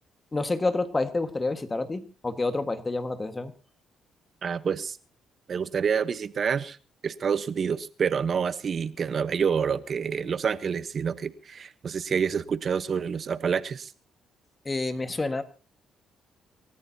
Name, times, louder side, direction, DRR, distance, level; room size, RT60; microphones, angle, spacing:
voice 1, 0.3-3.5 14.7-15.4, left 3 dB, 25° left, 10 dB, 1.6 m, -28 dB
voice 2, 4.4-5.0 5.5-6.8 7.0-13.9, right 6 dB, 50° right, 14 dB, 1.0 m, -28 dB
27.0 x 13.5 x 2.8 m, 0.34 s
cardioid pair, 90°, 0 cm